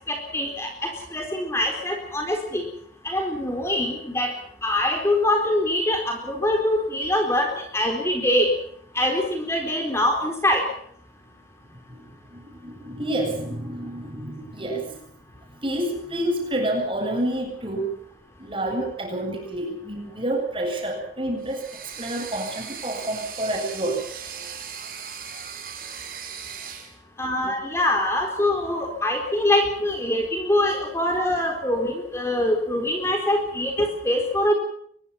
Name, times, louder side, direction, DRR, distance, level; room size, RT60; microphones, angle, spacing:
voice 1, 0.1-2.6 3.0-4.3 4.6-8.5 8.9-10.7 27.2-34.5, left 1 dB, 15° left, 3 dB, 4.0 m, -24 dB
voice 2, 11.9-15.0 15.6-17.9 18.4-24.0 27.4-27.6, right 1 dB, 30° right, 3 dB, 7.9 m, -29 dB
sound 1, 21.4-26.9, right 7 dB, 55° right, 6.3 m, -38 dB
24.0 x 22.0 x 5.8 m, 0.64 s
head